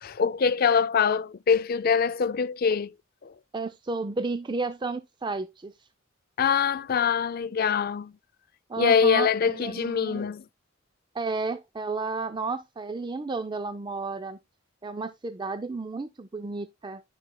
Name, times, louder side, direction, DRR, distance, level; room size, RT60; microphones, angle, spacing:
voice 1, 0.0-2.9 3.2-3.3 6.4-8.1 8.8-10.4, left 6 dB, 45° left, 0.4 m, -24 dB
voice 2, 3.5-5.9 8.7-10.3 11.1-14.4 14.8-17.0, right 3 dB, 20° right, 0.4 m, -32 dB
13.0 x 5.4 x 2.2 m
head